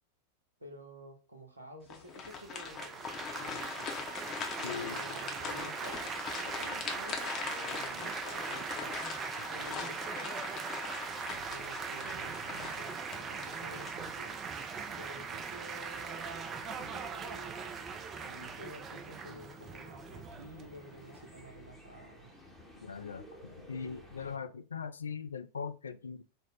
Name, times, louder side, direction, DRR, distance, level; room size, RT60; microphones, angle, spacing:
voice 1, 0.6-4.1 4.6-9.1 9.4-10.7 11.2-14.4 15.0-22.3, equal, 80° right, 0.8 m, -51 dB
sound 1, 1.9-14.5 15.0-15.1 15.7-16.2, left 5 dB, 30° left, 0.7 m, -41 dB
Laughter / Applause / Chatter, 2.3-21.4, right 5 dB, 25° right, 0.4 m, -41 dB
voice 2, 4.6-5.0 22.8-26.2, left 6 dB, 75° left, 0.3 m, -40 dB
sound 2, 10.9-24.4, left 1 dB, 5° right, 0.8 m, -54 dB
3.5 x 2.0 x 4.1 m
figure-of-eight pair, 90°, 0 cm